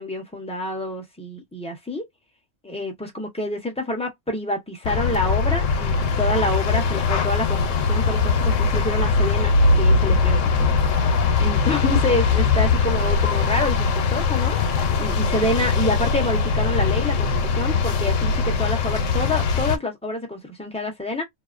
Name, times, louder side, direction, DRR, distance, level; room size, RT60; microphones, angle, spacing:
voice 1, 0.0-2.0 2.6-10.7 11.4-21.2, left 1 dB, 5° left, 0.7 m, -27 dB
sound 1, 4.8-19.8, left 4 dB, 90° left, 1.0 m, -21 dB
2.8 x 2.1 x 2.4 m
omnidirectional pair, 1.3 m